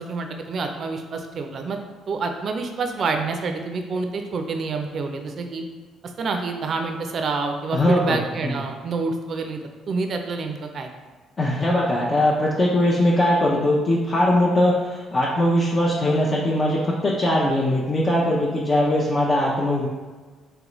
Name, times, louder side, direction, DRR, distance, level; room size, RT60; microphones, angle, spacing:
voice 1, 0.0-1.8 2.1-5.6 6.0-9.6 9.9-10.9, right 4 dB, 55° right, 5 dB, 0.4 m, -27 dB
voice 2, 7.7-8.6 11.4-19.9, left 1 dB, 35° left, -5 dB, 0.6 m, -21 dB
3.7 x 3.2 x 3.0 m, 1.4 s
cardioid pair, 80°, 0 cm